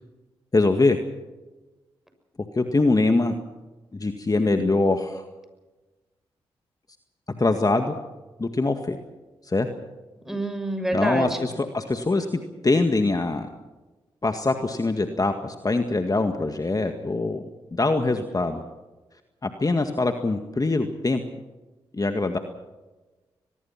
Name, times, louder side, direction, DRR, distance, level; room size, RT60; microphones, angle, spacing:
voice 1, 0.5-1.0 2.6-3.3 3.9-5.2 7.4-8.0 8.4-9.0 9.4-9.7 10.9-12.3 12.6-13.5 14.2-17.4 17.7-18.6 19.4-21.2 21.9-22.4, left 3 dB, 35° left, 6 dB, 1.9 m, -23 dB
voice 2, 4.3-4.7 10.2-11.4, right 1 dB, 5° right, 6 dB, 6.7 m, -27 dB
23.0 x 21.5 x 5.9 m, 1.1 s
supercardioid pair, 40°, 11 cm